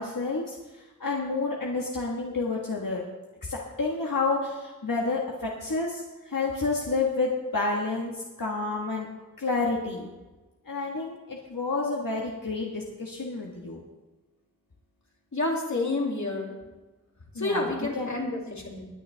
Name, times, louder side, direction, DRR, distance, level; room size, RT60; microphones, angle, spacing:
voice 1, 0.0-3.0 3.4-9.1 9.4-10.1 10.6-13.8 17.3-18.1, left 3 dB, 85° left, -2 dB, 1.6 m, -30 dB
voice 2, 15.3-16.6 17.4-18.9, left 2 dB, 60° left, -1 dB, 2.7 m, -29 dB
20.5 x 9.9 x 3.4 m, 1.2 s
wide cardioid pair, 50°, 32 cm